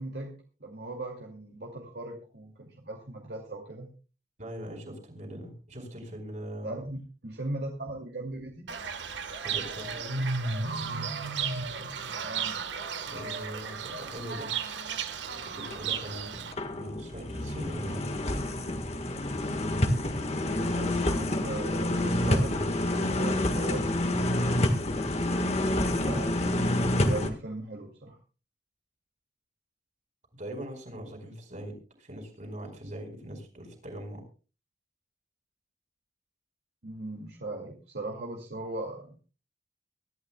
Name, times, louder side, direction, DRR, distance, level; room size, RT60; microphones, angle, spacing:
voice 1, 0.0-3.9 6.6-8.7 12.2-12.5 20.7-24.0 26.0-28.2 36.8-39.2, right 2 dB, 65° right, 0 dB, 2.5 m, -38 dB
voice 2, 4.4-6.7 9.4-10.3 13.0-14.5 15.5-18.1 30.3-34.2, equal, 40° right, 4 dB, 4.8 m, -41 dB
Fowl / Bird, 8.7-16.5, right 5 dB, 85° right, 1.5 m, -34 dB
sound 1, 15.7-15.9 16.3-27.3, left 1 dB, 35° left, 1.6 m, -28 dB
23.5 x 12.5 x 2.3 m, 0.35 s
head